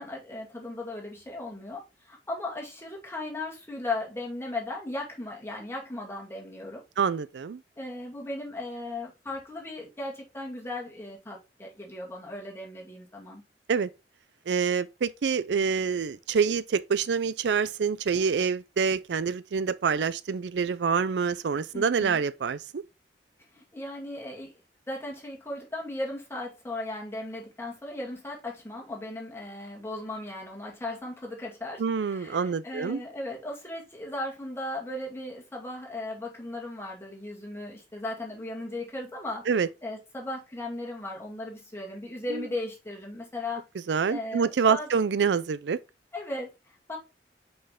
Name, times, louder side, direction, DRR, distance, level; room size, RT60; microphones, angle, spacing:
voice 1, 0.0-6.8 7.8-13.4 21.7-22.2 23.5-24.5 24.9-39.4 39.8-43.6 44.1-44.9 46.1-47.0, left 2 dB, 15° left, 2.3 m, -37 dB
voice 2, 7.0-7.6 13.7-13.9 14.5-22.8 31.8-33.0 39.5-39.7 42.3-42.5 43.9-45.8, right 6 dB, 75° right, 0.4 m, -26 dB
5.5 x 5.5 x 3.6 m
head